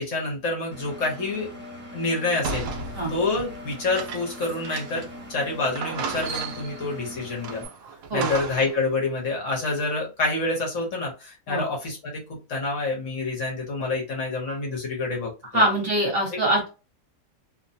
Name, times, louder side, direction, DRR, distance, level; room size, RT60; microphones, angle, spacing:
voice 1, 0.0-1.5 1.9-2.7 3.1-7.6 8.1-15.6 16.3-16.4, left 3 dB, 65° left, -1 dB, 1.2 m, -27 dB
Engine, 0.7-7.7, left 1 dB, 10° right, 0.7 m, -41 dB
sound 1, 2.4-5.2 5.4-5.5 5.8-6.9 7.4-8.8, right 4 dB, 85° right, 1.0 m, -34 dB
voice 2, 15.5-16.7, right 1 dB, 45° right, -3 dB, 1.3 m, -23 dB
2.8 x 2.2 x 2.6 m, 0.31 s
omnidirectional pair, 1.5 m